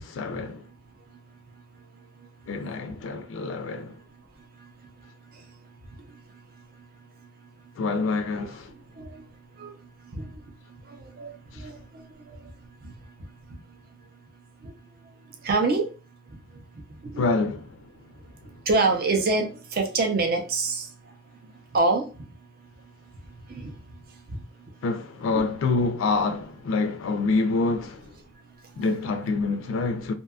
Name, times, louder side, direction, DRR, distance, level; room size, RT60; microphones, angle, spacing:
voice 1, 0.1-0.6 2.5-3.9 7.8-8.7 17.2-17.7 24.8-28.0 28.8-30.1, left 3 dB, 85° left, 0.3 m, -26 dB
voice 2, 11.6-12.1 12.8-12.9 14.6-14.7 15.4-15.8 17.1-17.2 18.7-20.9 21.7-22.0 23.5-23.7 25.3-25.4, right 3 dB, 50° right, 0.5 m, -25 dB
2.7 x 2.2 x 2.3 m
head